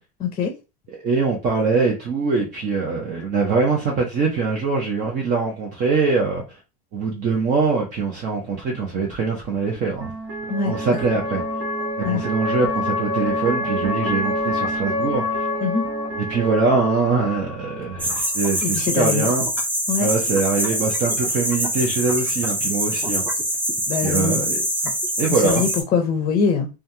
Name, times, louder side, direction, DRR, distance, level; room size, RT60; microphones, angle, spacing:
voice 1, 0.2-0.5 10.5-10.7 12.0-12.2 15.6-15.8 18.6-19.3 19.9-20.1 23.9-24.5 25.3-26.7, left 6 dB, 30° left, 0.6 m, -23 dB
voice 2, 1.0-6.6 6.9-10.1 10.6-11.4 12.0-15.5 16.2-19.5 20.0-23.2 24.0-24.6 25.2-25.6, right 4 dB, 40° right, 0.9 m, -23 dB
sound 1, 8.5-18.9, left 1 dB, 60° right, 1.1 m, -27 dB
sound 2, 18.0-25.8, right 1 dB, 10° right, 0.6 m, -24 dB
3.2 x 2.3 x 2.7 m
supercardioid pair, 125°, 20 cm